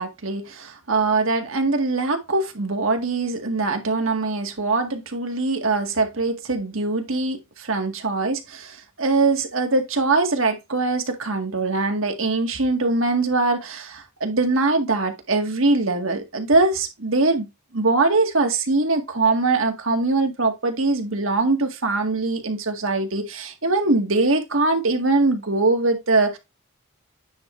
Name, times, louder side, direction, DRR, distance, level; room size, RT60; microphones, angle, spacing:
voice 1, 0.0-17.5 17.7-26.4, right 3 dB, 75° right, 1.9 m, -22 dB
9.4 x 4.7 x 3.3 m
head